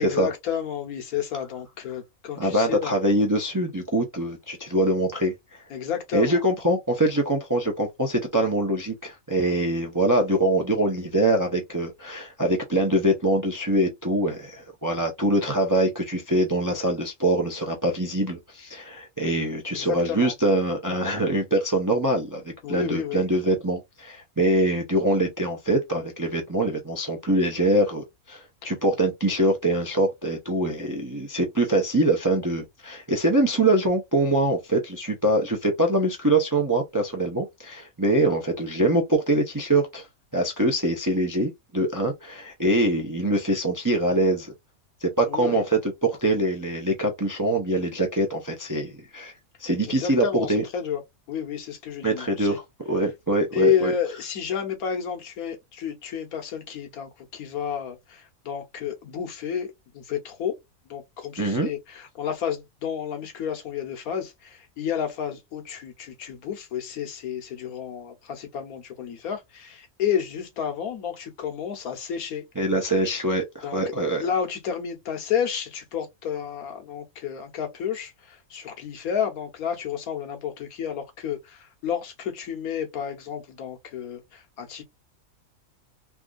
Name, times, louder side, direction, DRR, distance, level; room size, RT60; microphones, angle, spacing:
voice 1, 0.0-2.9 5.7-6.4 19.7-20.3 22.6-23.2 28.6-28.7 38.3-38.4 45.3-45.6 49.9-51.0 51.3-52.6 53.5-60.5 60.9-72.4 73.6-73.9 74.2-84.8, left 8 dB, 85° left, 1.4 m, -30 dB
voice 2, 2.4-5.6 6.1-40.1 40.3-44.5 45.0-49.3 49.6-50.6 52.0-52.6 52.9-53.9 61.4-61.7 72.6-74.2, right 1 dB, 25° right, 0.4 m, -24 dB
3.4 x 2.5 x 2.3 m
omnidirectional pair, 1.5 m